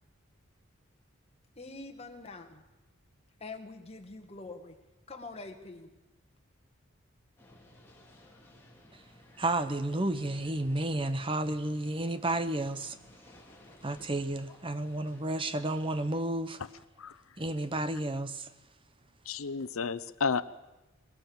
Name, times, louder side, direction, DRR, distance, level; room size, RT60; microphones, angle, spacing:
voice 1, 1.6-2.6 3.4-4.8 5.1-5.9, left 3 dB, 30° left, 1.9 m, -45 dB
sound 1, 7.4-16.2, left 1 dB, 10° left, 3.4 m, -58 dB
voice 2, 9.4-13.0 13.8-16.6 17.4-18.5, right 1 dB, 25° right, 0.8 m, -31 dB
voice 3, 19.3-20.4, left 5 dB, 90° left, 0.7 m, -31 dB
21.5 x 20.5 x 7.2 m
head